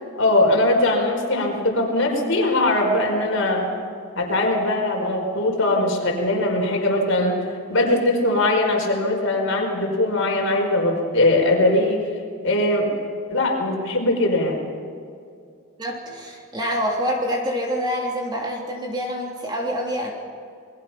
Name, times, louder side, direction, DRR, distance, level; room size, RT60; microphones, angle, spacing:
voice 1, 0.1-3.6 4.1-7.4 7.7-12.0 12.4-12.9 13.3-14.6, left 1 dB, 65° left, 1 dB, 5.0 m, -20 dB
voice 2, 15.8-20.1, equal, 20° right, 0 dB, 3.1 m, -26 dB
28.5 x 22.0 x 5.8 m, 2.4 s
head